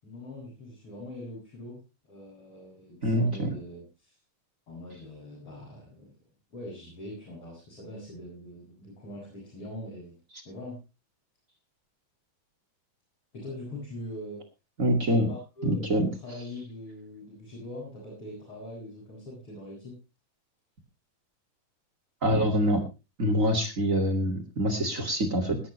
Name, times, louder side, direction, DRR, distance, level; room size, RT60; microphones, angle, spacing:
voice 1, 0.0-1.8 2.1-4.1 4.7-6.1 6.5-10.2 10.4-10.8 13.3-14.4 15.1-20.0, left 1 dB, 35° left, -4 dB, 8.5 m, -42 dB
voice 2, 3.0-3.5 14.8-15.3 15.6-16.1 22.2-22.8 23.2-25.6, equal, 25° right, 6 dB, 2.0 m, -25 dB
20.5 x 11.0 x 3.2 m, 0.29 s
omnidirectional pair, 4.4 m